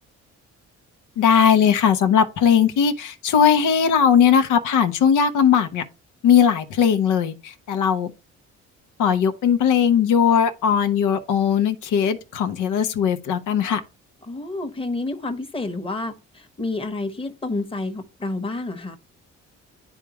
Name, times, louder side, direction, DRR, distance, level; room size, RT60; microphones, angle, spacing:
voice 1, 1.2-5.8 6.2-8.1 9.0-13.8, left 7 dB, 80° left, 0.8 m, -19 dB
voice 2, 14.3-16.1 16.6-19.0, left 2 dB, 20° left, 1.0 m, -29 dB
10.5 x 3.6 x 2.9 m
cardioid pair, 90°, 30 cm